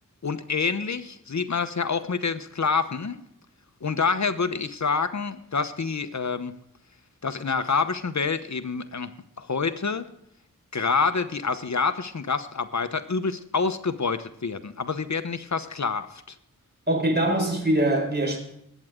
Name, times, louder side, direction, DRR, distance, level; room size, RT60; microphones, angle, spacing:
voice 1, 0.2-3.2 3.8-6.5 7.2-9.1 9.4-10.1 10.7-16.3, left 5 dB, 55° left, 1.0 m, -27 dB
voice 2, 16.9-18.4, right 1 dB, 30° right, 4.8 m, -23 dB
20.5 x 9.2 x 3.7 m
wide cardioid pair, 65°, 34 cm